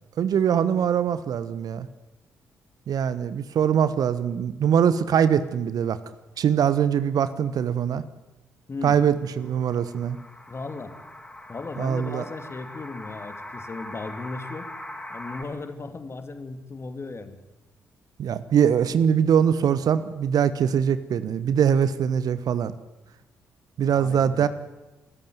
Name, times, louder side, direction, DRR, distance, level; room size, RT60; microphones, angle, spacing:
voice 1, 0.2-1.9 2.9-6.0 6.4-8.0 8.8-10.2 11.8-12.2 18.2-22.8 23.8-24.5, right 8 dB, 55° right, 15 dB, 1.1 m, -22 dB
sound 1, 9.4-15.4, left 1 dB, 10° left, 5.3 m, -41 dB
voice 2, 10.5-10.9 11.5-14.7 15.1-17.4 23.9-24.5, left 3 dB, 35° left, 10 dB, 2.5 m, -36 dB
27.0 x 14.5 x 9.4 m, 1.0 s
figure-of-eight pair, 40°, 8 cm